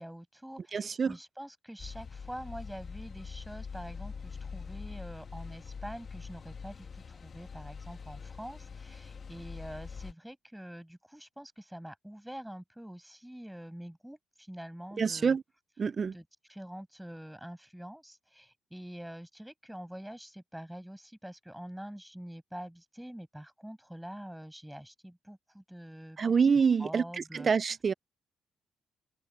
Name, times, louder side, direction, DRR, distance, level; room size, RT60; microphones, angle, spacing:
voice 1, 0.0-15.4 16.1-16.2 16.5-26.3 26.8-27.5, equal, 5° right, 6.5 m, -45 dB
voice 2, 0.7-1.1 15.0-15.4 15.8-16.1 26.2-27.9, right 6 dB, 40° right, 0.4 m, -26 dB
sound 1, 1.8-10.1, left 5 dB, 45° left, 1.7 m, -44 dB
open air
cardioid pair, 90°, 0 cm